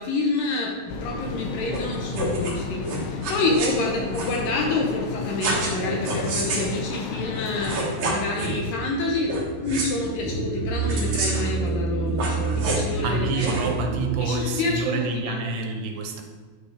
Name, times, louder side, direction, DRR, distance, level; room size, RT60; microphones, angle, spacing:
voice 1, 0.0-9.3 9.6-13.7 14.2-15.5, left 2 dB, 75° left, 0 dB, 2.2 m, -28 dB
sound 1, 0.9-7.8, left 5 dB, 90° left, 2.7 m, -33 dB
sound 2, 1.7-1.8 2.1-2.5 2.8-3.7 4.1-4.4 5.4-5.8 6.0-6.7 7.4-7.5 7.6-8.5 9.2-9.4 9.7-9.9 10.9-11.5 12.1-12.9 13.4-13.7, right 2 dB, 55° right, 2.2 m, -28 dB
sound 3, 8.4-14.3, right 3 dB, 55° left, 1.0 m, -28 dB
voice 2, 13.0-16.2, right 3 dB, 80° right, 3 dB, 2.8 m, -27 dB
9.2 x 6.7 x 3.4 m, 1.4 s
omnidirectional pair, 4.7 m